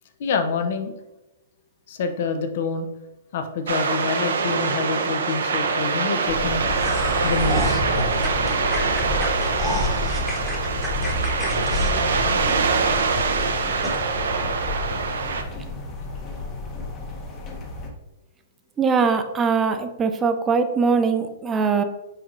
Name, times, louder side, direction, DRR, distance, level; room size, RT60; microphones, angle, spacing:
voice 1, 0.2-0.9 1.9-2.9 3.3-6.7 7.2-7.8 11.5-12.5, left 5 dB, 60° left, 7 dB, 0.6 m, -27 dB
sound 1, 3.7-15.4, right 5 dB, 80° right, 0.5 m, -24 dB
sound 2, 6.3-17.9, left 2 dB, 30° left, 0.9 m, -30 dB
sound 3, 6.6-12.9 13.3-13.4 13.8-14.0, equal, 5° left, 1.0 m, -30 dB
voice 2, 18.8-21.8, right 5 dB, 20° right, 7 dB, 0.5 m, -21 dB
4.7 x 4.4 x 2.5 m, 0.99 s
hypercardioid pair, 125°, 0 cm